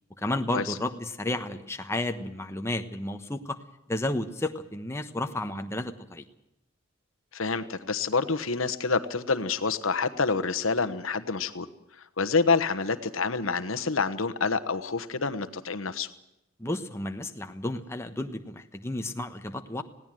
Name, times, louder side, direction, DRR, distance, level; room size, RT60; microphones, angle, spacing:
voice 1, 0.2-3.6 3.9-6.2 16.6-19.8, left 1 dB, 15° left, 6 dB, 1.2 m, -32 dB
voice 2, 7.3-11.7 12.2-16.1, left 4 dB, 80° left, 9 dB, 1.2 m, -27 dB
20.5 x 16.5 x 7.7 m, 0.88 s
head